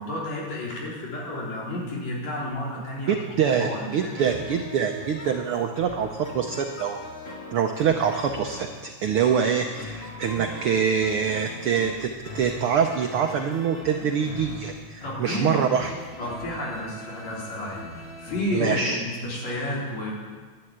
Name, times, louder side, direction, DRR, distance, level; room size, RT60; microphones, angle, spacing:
voice 1, 0.0-3.1 3.4-4.2 15.0-15.7 16.2-20.1, left 1 dB, 65° left, -4 dB, 4.7 m, -31 dB
voice 2, 3.1-7.0 7.5-15.9 18.5-19.0, right 7 dB, 75° right, 4 dB, 1.3 m, -25 dB
sound 1, 4.2-18.5, left 2 dB, 30° left, 1.2 m, -40 dB
11.5 x 11.0 x 8.9 m, 1.4 s
omnidirectional pair, 3.4 m